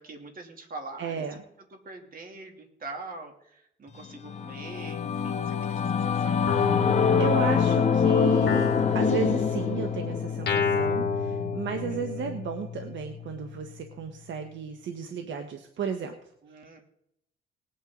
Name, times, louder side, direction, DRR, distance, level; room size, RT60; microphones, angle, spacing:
voice 1, 0.0-1.4 1.7-6.4 11.6-12.3 16.4-16.8, right 3 dB, 45° right, 3 dB, 2.9 m, -44 dB
voice 2, 1.0-1.4 7.2-16.1, right 6 dB, 70° right, 5 dB, 1.3 m, -34 dB
Singing / Musical instrument, 4.0-13.7, left 6 dB, 35° left, 1.5 m, -26 dB
Guitar, 6.5-8.0 8.5-12.4, left 5 dB, 55° left, 2.3 m, -30 dB
19.5 x 9.0 x 3.9 m, 0.76 s
cardioid pair, 90°, 20 cm